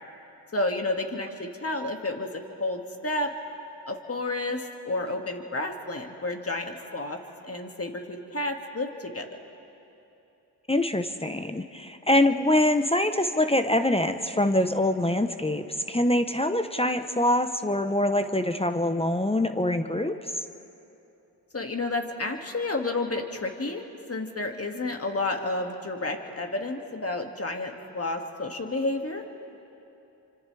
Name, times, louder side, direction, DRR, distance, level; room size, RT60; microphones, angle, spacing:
voice 1, 0.5-2.3 2.6-3.3 3.9-9.3 21.5-29.2, left 2 dB, 30° left, 3 dB, 2.3 m, -31 dB
voice 2, 10.7-20.3, left 1 dB, 15° left, 8 dB, 1.0 m, -24 dB
29.5 x 25.5 x 3.5 m, 2.9 s
supercardioid pair, 50°, 45 cm